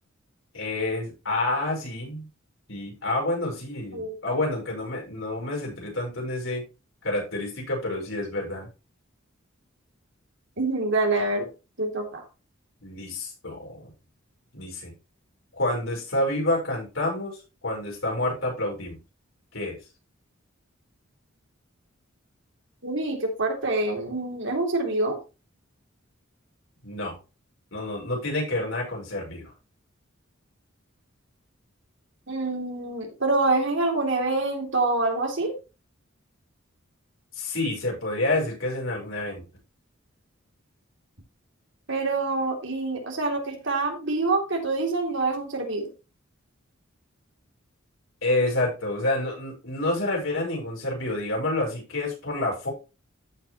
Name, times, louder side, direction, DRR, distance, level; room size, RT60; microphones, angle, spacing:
voice 1, 0.5-2.3 2.7-6.6 7.0-8.7 12.8-13.9 14.5-14.9 15.5-19.0 19.5-19.8 26.8-27.1 27.7-29.5 37.3-39.4 48.2-52.7, left 2 dB, 70° left, -2 dB, 5.9 m, -28 dB
voice 2, 3.9-4.3 10.6-11.5 11.8-12.2 22.8-25.2 32.3-35.5 41.9-45.9, right 2 dB, 60° right, 2 dB, 3.2 m, -26 dB
14.0 x 5.8 x 3.1 m, 0.30 s
head